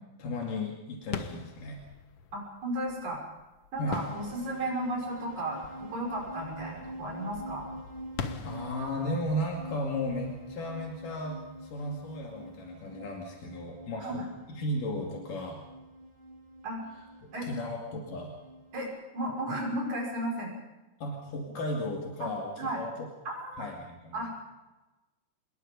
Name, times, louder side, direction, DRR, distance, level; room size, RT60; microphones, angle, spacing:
voice 1, 0.2-1.8 3.8-4.0 8.4-14.2 14.5-15.6 17.4-18.4 21.0-23.1 23.6-24.2, left 1 dB, 85° left, 0 dB, 4.0 m, -35 dB
sound 1, 1.0-11.6, left 6 dB, 55° left, 2.1 m, -44 dB
voice 2, 2.3-3.2 3.7-7.7 14.0-14.3 16.6-16.8 17.3-17.5 18.7-20.6 22.2-22.3 22.6-22.8 23.3-23.7 24.1-24.3, right 1 dB, 60° right, -1 dB, 7.5 m, -34 dB
sound 2, 3.9-18.8, right 1 dB, 85° right, 5.7 m, -46 dB
27.0 x 22.0 x 5.4 m, 1.1 s
omnidirectional pair, 3.7 m